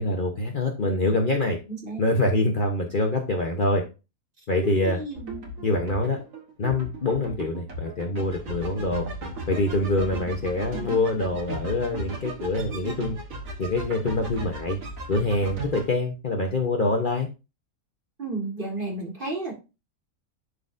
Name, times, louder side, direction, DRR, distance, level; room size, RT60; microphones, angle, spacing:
voice 1, 0.0-1.6 2.0-3.8 4.5-5.0 5.6-6.2 6.6-9.0 9.5-13.2 13.6-14.8 15.1-17.3, left 2 dB, 40° left, 2 dB, 0.9 m, -25 dB
voice 2, 1.7-2.0 4.6-5.4 18.2-19.5, right 3 dB, 35° right, 0 dB, 2.0 m, -32 dB
sound 1, 5.1-15.9, right 1 dB, 65° right, 1.8 m, -36 dB
11.0 x 4.0 x 2.6 m, 0.29 s
omnidirectional pair, 1.5 m